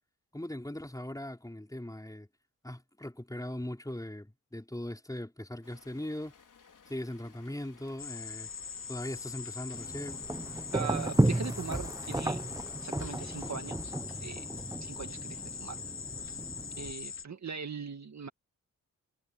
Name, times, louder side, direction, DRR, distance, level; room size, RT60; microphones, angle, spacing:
voice 1, 0.3-2.3 2.6-6.3 6.9-8.5 8.9-10.2, left 1 dB, 10° left, 5.0 m, -39 dB
Rain, 5.6-13.6, left 6 dB, 65° left, 4.0 m, -59 dB
sound 1, 8.0-17.2, left 6 dB, 40° left, 0.8 m, -42 dB
sound 2, 9.7-16.9, right 1 dB, 10° right, 1.0 m, -33 dB
voice 2, 10.7-12.4 12.8-13.9 14.2-15.8 16.2-16.3 16.8-18.3, right 6 dB, 55° right, 2.1 m, -40 dB
cardioid pair, 60°, 34 cm